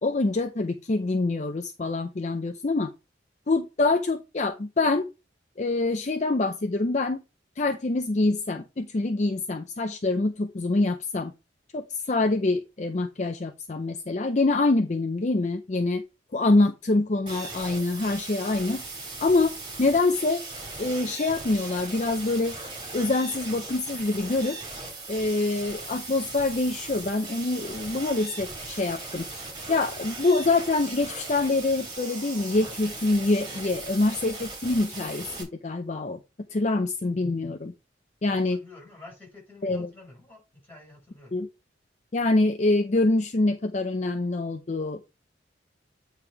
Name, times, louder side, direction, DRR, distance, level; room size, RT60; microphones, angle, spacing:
voice 1, 0.0-2.9 3.5-5.1 5.6-7.2 7.6-11.3 11.7-16.0 16.3-18.8 19.2-19.5 19.8-20.4 20.8-22.5 22.9-24.6 25.1-29.3 29.7-36.2 36.5-37.7 38.2-38.6 39.6-39.9 41.3-41.5 42.1-45.0, left 2 dB, 40° left, 7 dB, 0.5 m, -25 dB
sound 1, 17.3-35.4, right 3 dB, 25° right, 3.2 m, -38 dB
voice 2, 38.3-41.3, left 2 dB, 10° left, -1 dB, 4.9 m, -49 dB
8.8 x 3.4 x 4.7 m, 0.27 s
head